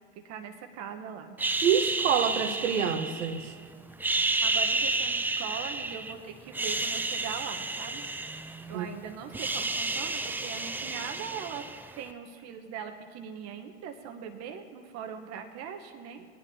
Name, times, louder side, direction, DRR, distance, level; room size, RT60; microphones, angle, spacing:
voice 1, 0.1-1.4 4.2-8.1 8.7-11.7 12.0-16.3, right 7 dB, 45° right, 5 dB, 1.1 m, -41 dB
sound 1, 1.4-3.5 3.9-6.1 6.5-8.9 9.1-12.0, right 2 dB, 5° right, 0.4 m, -31 dB
voice 2, 1.6-3.5 8.7-8.9, right 8 dB, 85° right, 8 dB, 1.1 m, -27 dB
19.5 x 10.0 x 2.8 m, 2.1 s
hypercardioid pair, 90°, 36 cm